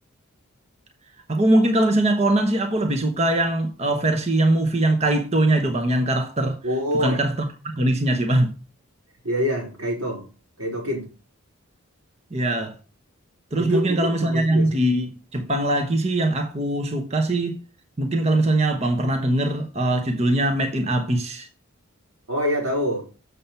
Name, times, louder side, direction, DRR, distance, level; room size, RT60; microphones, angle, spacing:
voice 1, 1.3-6.6 7.0-8.5 12.3-12.8 13.5-17.6 18.0-21.5, right 1 dB, 30° right, 0.9 m, -22 dB
voice 2, 6.6-7.2 9.2-10.3 10.6-11.1 13.6-14.8 22.3-23.1, equal, 85° right, 4.2 m, -25 dB
7.4 x 6.8 x 4.3 m
head